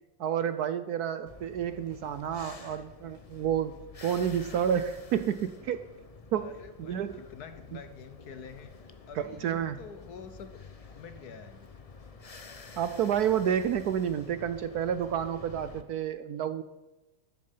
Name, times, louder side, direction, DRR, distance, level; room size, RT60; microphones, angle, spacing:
voice 1, 0.2-3.7 4.0-5.8 6.3-6.5 6.8-7.2 9.2-9.8 12.8-16.6, right 9 dB, 70° right, 12 dB, 1.0 m, -30 dB
sound 1, 1.3-15.8, left 4 dB, 35° left, 0.6 m, -49 dB
voice 2, 6.3-10.6 10.9-11.7, left 6 dB, 60° left, 11 dB, 1.3 m, -47 dB
14.5 x 11.0 x 5.6 m, 1.1 s
omnidirectional pair, 2.0 m